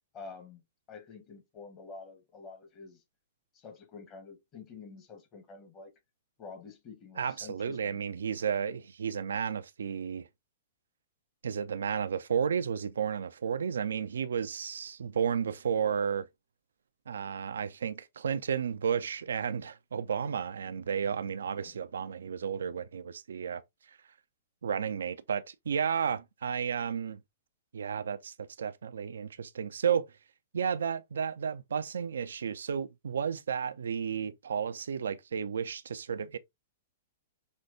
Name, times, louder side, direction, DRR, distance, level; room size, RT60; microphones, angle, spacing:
voice 1, 0.1-0.6 0.9-3.0 3.5-5.9 6.4-8.7 21.5-21.7, left 4 dB, 30° left, 1.2 m, -48 dB
voice 2, 7.2-10.3 11.4-16.3 17.1-23.6 24.6-27.2 27.7-30.1 30.5-36.4, right 7 dB, 65° right, 0.4 m, -32 dB
5.5 x 3.0 x 2.6 m
figure-of-eight pair, 105°, 0 cm